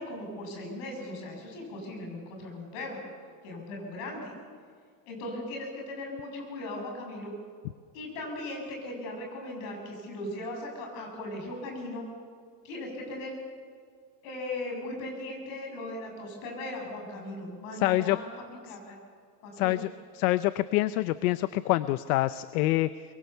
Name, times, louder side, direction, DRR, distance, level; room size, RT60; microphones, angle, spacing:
voice 1, 0.0-3.0 3.4-4.3 5.1-7.3 7.9-12.0 12.6-13.4 14.2-19.0 19.4-19.8, left 1 dB, 55° left, 1 dB, 7.6 m, -38 dB
voice 2, 17.7-18.2 19.6-19.9 20.1-23.0, left 17 dB, 70° left, 15 dB, 0.7 m, -26 dB
24.5 x 22.5 x 6.9 m, 2.1 s
supercardioid pair, 165°, 46 cm